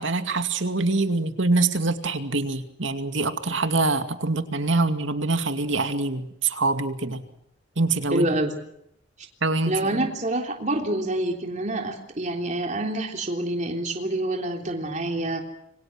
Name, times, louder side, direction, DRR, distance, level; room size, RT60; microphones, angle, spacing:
voice 1, 0.0-7.2 7.8-8.3 9.4-10.1, right 3 dB, 75° right, 8 dB, 2.4 m, -25 dB
voice 2, 8.1-8.5 9.7-15.4, right 1 dB, 40° right, 2 dB, 3.5 m, -27 dB
27.5 x 24.5 x 6.3 m, 0.75 s
head